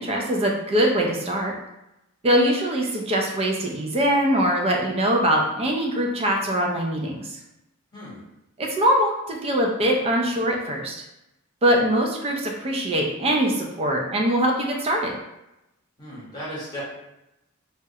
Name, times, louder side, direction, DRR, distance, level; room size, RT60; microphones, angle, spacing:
voice 1, 0.0-1.5 2.2-7.4 8.6-11.0 11.6-15.1, equal, 25° right, 0 dB, 0.4 m, -22 dB
voice 2, 7.9-8.2 16.0-16.8, equal, 20° left, -8 dB, 0.9 m, -35 dB
2.3 x 2.0 x 2.7 m, 0.90 s
head